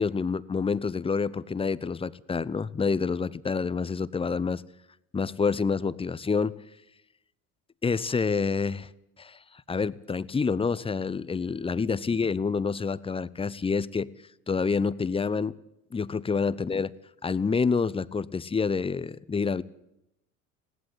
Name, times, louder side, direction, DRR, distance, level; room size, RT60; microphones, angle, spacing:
voice 1, 0.0-4.6 5.1-6.5 7.8-8.9 9.2-14.1 14.5-15.6 15.9-16.9 17.2-19.6, left 5 dB, 15° left, 19 dB, 0.8 m, -28 dB
20.0 x 17.5 x 8.0 m, 0.84 s
figure-of-eight pair, 70°, 43 cm